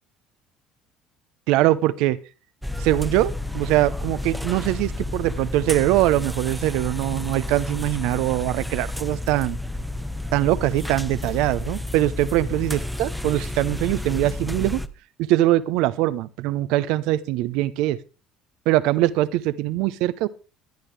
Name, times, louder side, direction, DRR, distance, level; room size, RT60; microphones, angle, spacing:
voice 1, 1.5-2.2 2.8-9.6 10.3-14.8 15.2-18.0 18.7-20.3, right 15 dB, 70° right, 16 dB, 0.8 m, -22 dB
sound 1, 2.6-14.9, left 1 dB, ahead, 1.0 m, -31 dB
20.0 x 10.5 x 3.4 m, 0.33 s
hypercardioid pair, 70°, 0 cm